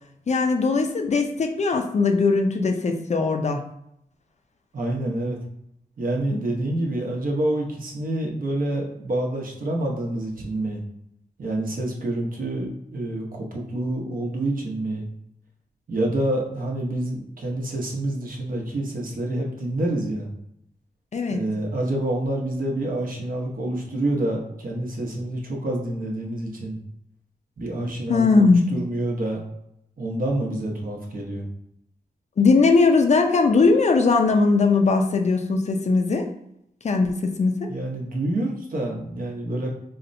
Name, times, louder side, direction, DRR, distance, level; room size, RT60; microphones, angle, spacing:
voice 1, 0.3-3.7 6.3-6.4 21.1-21.4 28.1-28.6 32.4-36.3 36.8-37.7, left 4 dB, 45° left, 4 dB, 0.4 m, -19 dB
voice 2, 4.7-5.4 6.0-10.8 11.4-15.0 15.9-20.3 21.3-26.8 27.6-29.4 30.0-31.5 37.7-39.7, right 1 dB, 60° right, -1 dB, 0.8 m, -27 dB
4.1 x 2.1 x 2.6 m, 0.77 s
cardioid pair, 80°, 16 cm